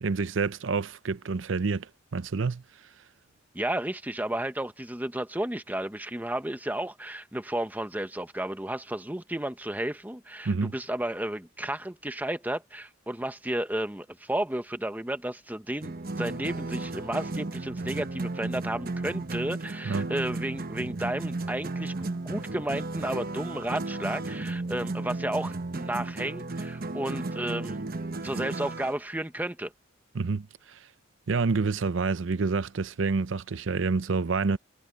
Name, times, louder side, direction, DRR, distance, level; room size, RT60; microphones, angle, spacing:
voice 1, 0.0-2.6 10.5-10.8 19.8-20.1 30.1-30.9 31.3-34.6, right 4 dB, 70° right, 0.6 m, -28 dB
voice 2, 3.5-27.8 28.2-29.7, right 1 dB, 10° right, 1.0 m, -33 dB
sound 1, 15.8-28.9, right 2 dB, 50° right, 1.0 m, -34 dB
head